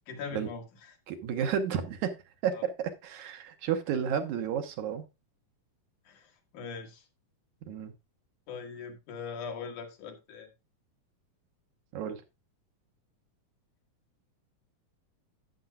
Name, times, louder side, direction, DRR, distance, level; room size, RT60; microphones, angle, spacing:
voice 1, 0.1-1.0 2.5-2.6 6.1-7.0 8.5-10.5, left 5 dB, 75° left, 3.2 m, -41 dB
voice 2, 1.1-5.1 7.7-7.9 11.9-12.2, right 8 dB, 75° right, 2.4 m, -32 dB
12.0 x 9.0 x 2.3 m
omnidirectional pair, 3.6 m